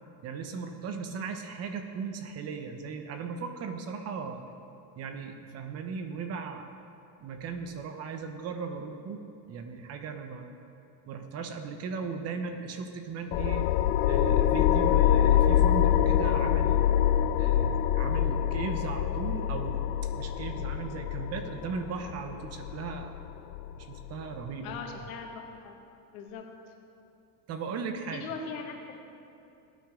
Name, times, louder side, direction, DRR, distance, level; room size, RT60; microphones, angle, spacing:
voice 1, 0.2-4.4 5.0-6.7 7.2-10.6 11.1-13.7 14.0-16.9 17.4-19.8 20.2-23.4 23.8-24.8 27.5-28.2, right 5 dB, 35° right, 6 dB, 0.9 m, -37 dB
sound 1, 13.3-24.4, left 10 dB, 55° left, 0.5 m, -25 dB
voice 2, 24.6-25.7 26.1-26.5 28.1-29.0, left 5 dB, 75° left, 2 dB, 1.9 m, -40 dB
19.5 x 9.2 x 3.7 m, 2.7 s
supercardioid pair, 145°, 44 cm